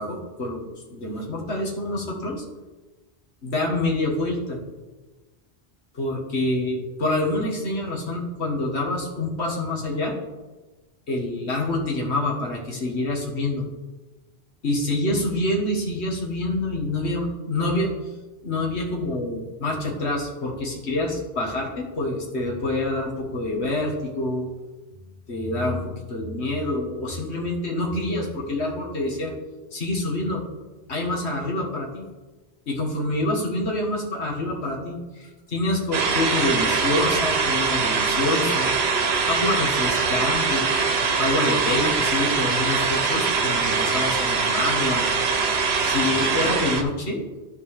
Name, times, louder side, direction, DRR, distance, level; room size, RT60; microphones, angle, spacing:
voice 1, 0.0-2.5 3.4-4.6 5.9-10.2 11.1-13.7 14.6-17.9 18.4-24.5 25.3-29.3 29.7-30.4 30.9-32.0 32.7-38.7 39.3-40.8 41.2-45.1 45.8-47.2, left 2 dB, 80° left, -1 dB, 1.9 m, -26 dB
sound 1, 35.9-46.8, right 5 dB, 70° right, 1.1 m, -23 dB
14.0 x 4.6 x 3.5 m, 1.2 s
omnidirectional pair, 1.1 m